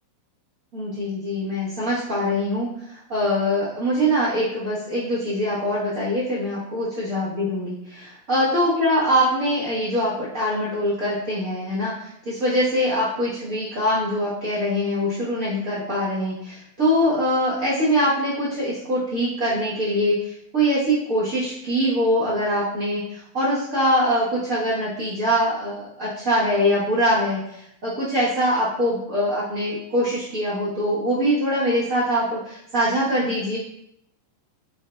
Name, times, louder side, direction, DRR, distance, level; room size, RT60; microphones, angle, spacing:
voice 1, 0.7-33.6, equal, 45° right, -9 dB, 0.9 m, -23 dB
3.8 x 2.4 x 2.2 m, 0.77 s
figure-of-eight pair, 90°, 0 cm